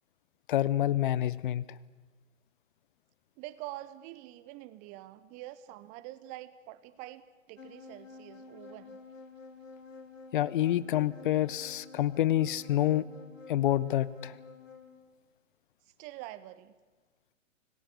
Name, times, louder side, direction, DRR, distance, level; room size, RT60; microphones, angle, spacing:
voice 1, 0.5-1.6 10.3-13.1 13.5-14.4, left 13 dB, 40° left, 19 dB, 0.8 m, -27 dB
voice 2, 3.4-9.0 15.9-16.7, right 15 dB, 20° right, 16 dB, 0.7 m, -46 dB
sound 1, 7.6-15.0, left 4 dB, 80° left, 3.6 m, -50 dB
26.5 x 19.5 x 8.2 m, 1.3 s
figure-of-eight pair, 120°, 38 cm